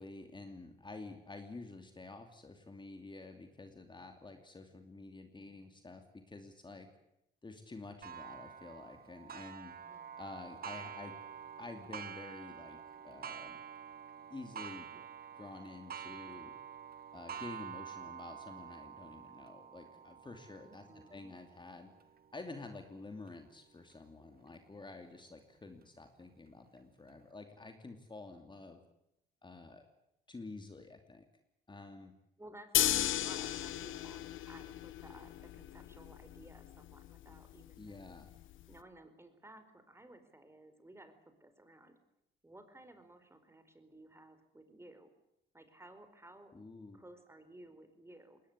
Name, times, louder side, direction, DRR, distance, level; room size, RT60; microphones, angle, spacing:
voice 1, 0.0-6.9 7.4-9.7 10.2-11.2 11.6-12.8 13.0-13.6 14.3-14.9 15.3-16.5 17.1-20.8 21.1-21.9 22.3-28.8 29.4-29.9 30.3-31.2 31.7-32.1 37.8-38.3 46.5-47.0, left 3 dB, 25° left, 6 dB, 2.7 m, -49 dB
Clock, 8.0-23.3 23.9-24.0 24.5-24.6 25.6-25.7, right 8 dB, 50° right, 1.6 m, -48 dB
voice 2, 9.9-10.2 20.6-21.3 32.4-38.2 38.7-42.0 42.4-45.1 45.5-46.5 46.9-48.4, right 1 dB, 15° right, 9 dB, 4.5 m, -56 dB
sound 1, 32.7-38.8, left 13 dB, 80° left, 1.2 m, -36 dB
20.5 x 18.5 x 9.9 m, 0.84 s
cardioid pair, 90°, 20 cm